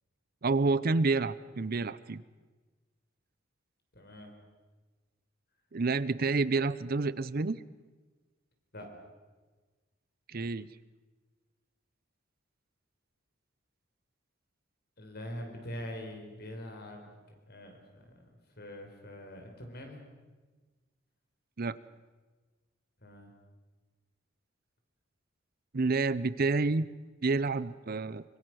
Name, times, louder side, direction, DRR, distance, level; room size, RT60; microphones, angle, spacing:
voice 1, 0.4-2.2 5.7-7.6 10.3-10.7 21.6-21.8 25.7-26.9 27.2-28.2, right 3 dB, 50° right, 17 dB, 0.6 m, -29 dB
voice 2, 3.9-4.3 8.7-8.9 15.0-17.1 17.5-18.3 18.6-20.0 23.0-23.3, left 1 dB, 55° left, 3 dB, 5.0 m, -43 dB
24.5 x 23.5 x 6.4 m, 1.3 s
head